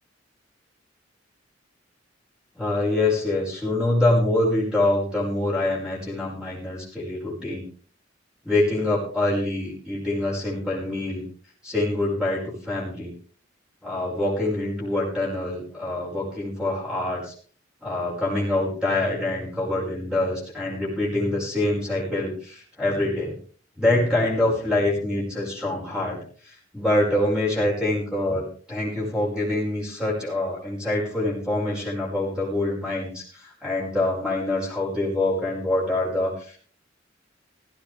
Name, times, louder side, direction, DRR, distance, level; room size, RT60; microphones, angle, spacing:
voice 1, 2.6-7.6 8.4-11.3 11.6-13.1 13.8-17.3 17.8-23.4 23.8-36.6, left 2 dB, 5° right, -4 dB, 5.4 m, -25 dB
17.0 x 15.0 x 3.4 m, 0.43 s
head